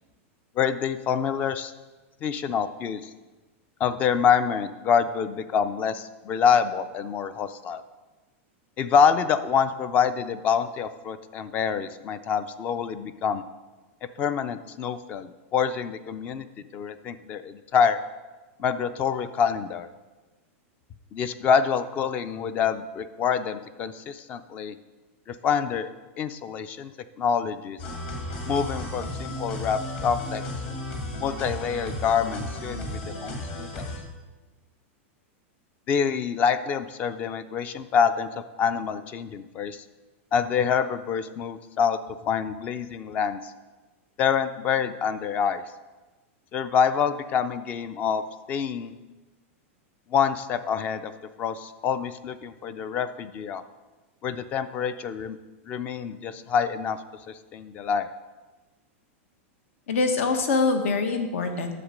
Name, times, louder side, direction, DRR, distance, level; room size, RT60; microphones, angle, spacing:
voice 1, 0.6-1.7 2.2-3.1 3.8-7.8 8.8-13.4 14.2-16.5 16.7-18.0 18.6-19.9 21.1-24.8 25.3-25.9 26.2-26.9 27.2-27.8 28.5-30.4 31.2-33.9 35.9-39.8 40.3-42.0 42.3-43.5 44.2-45.6 46.5-48.9 50.1-51.1 51.4-53.6 54.2-55.4 55.7-58.1, left 7 dB, 20° left, 14 dB, 0.4 m, -26 dB
sound 1, 27.8-34.0, left 1 dB, 45° left, 2.1 m, -34 dB
voice 2, 59.9-61.7, left 3 dB, 80° left, 7 dB, 1.4 m, -24 dB
10.0 x 7.3 x 5.1 m, 1.2 s
supercardioid pair, 170°, 7 cm